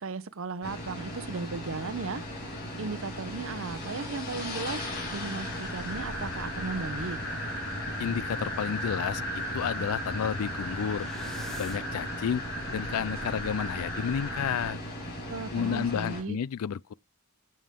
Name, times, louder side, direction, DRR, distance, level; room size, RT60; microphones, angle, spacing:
voice 1, 0.0-2.3 2.8-7.2 15.3-16.4, right 3 dB, 65° right, 0.7 m, -36 dB
sound 1, 0.6-16.2, left 1 dB, 45° left, 4.5 m, -38 dB
sound 2, 4.3-14.7, equal, 70° left, 3.3 m, -37 dB
voice 2, 8.0-11.1 11.6-12.4 12.7-14.8 15.5-16.9, left 8 dB, 85° left, 0.4 m, -31 dB
sound 3, 9.9-12.1, equal, ahead, 1.4 m, -49 dB
14.0 x 5.6 x 3.6 m
head